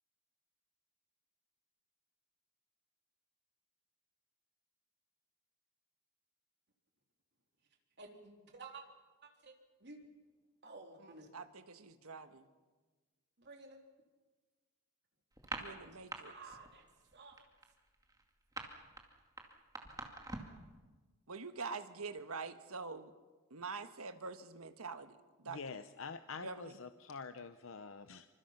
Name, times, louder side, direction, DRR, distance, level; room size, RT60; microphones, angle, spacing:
voice 1, 8.0-8.8 9.2-9.5 9.8-10.0 10.6-11.3 13.4-13.8 16.2-16.8 17.1-17.5, right 3 dB, 50° right, 2 dB, 3.5 m, -53 dB
voice 2, 11.3-12.5 15.5-16.3 21.3-23.1 23.5-25.8 26.4-26.7, right 4 dB, 80° right, 9 dB, 1.5 m, -45 dB
sound 1, 15.3-16.2 16.5-16.8 17.1-20.6, right 2 dB, 15° right, 2.3 m, -44 dB
voice 3, 25.5-28.3, left 4 dB, 65° left, 10 dB, 0.8 m, -46 dB
27.0 x 25.0 x 5.9 m, 1.3 s
head